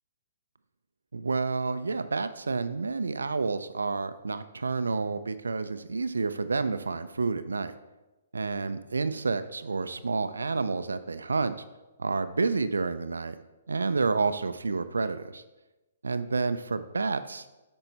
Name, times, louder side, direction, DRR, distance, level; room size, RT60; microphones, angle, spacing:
voice 1, 1.1-7.7 8.3-11.5 12.0-13.4 13.7-15.4 16.0-17.5, right 4 dB, 85° right, 11 dB, 0.4 m, -29 dB
8.9 x 5.4 x 4.1 m, 1.1 s
hypercardioid pair, 130°, 0 cm